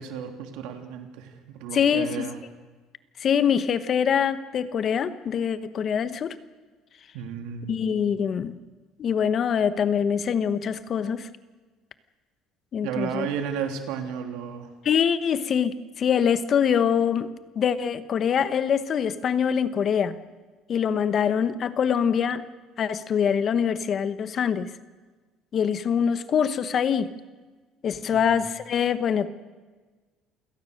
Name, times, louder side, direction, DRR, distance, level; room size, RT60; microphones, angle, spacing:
voice 1, 0.0-2.4 7.1-7.8 12.8-14.7 28.1-28.4, right 8 dB, 85° right, 5 dB, 2.9 m, -33 dB
voice 2, 1.7-2.3 3.2-6.3 7.7-8.6 9.0-11.3 12.7-13.3 14.8-17.3 17.5-20.2 20.7-22.4 22.8-24.7 25.5-27.1 27.8-29.3, left 7 dB, 40° left, 13 dB, 1.1 m, -24 dB
27.5 x 17.5 x 6.5 m, 1.3 s
cardioid pair, 125°, 0 cm